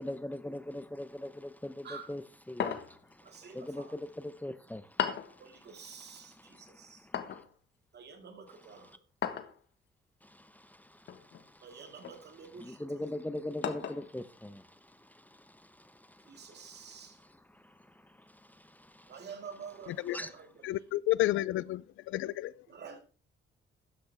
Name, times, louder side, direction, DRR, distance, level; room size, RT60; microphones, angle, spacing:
voice 1, 0.0-5.7 6.2-7.4 8.5-9.0 10.2-12.1 12.5-19.3 20.1-20.3, left 1 dB, 10° left, 0.8 m, -43 dB
sound 1, 2.6-3.1 5.0-5.4 7.1-7.5 9.2-9.6 11.1-11.4 12.0-12.2 13.6-14.1, left 8 dB, 65° left, 1.5 m, -35 dB
voice 2, 3.2-3.9 5.4-7.1 7.9-9.0 11.6-12.8 16.3-17.2 19.1-20.6 22.7-23.0, right 6 dB, 55° right, 2.3 m, -49 dB
voice 3, 20.6-22.5, left 15 dB, 80° left, 0.5 m, -30 dB
12.5 x 10.0 x 3.5 m
cardioid pair, 90°, 20 cm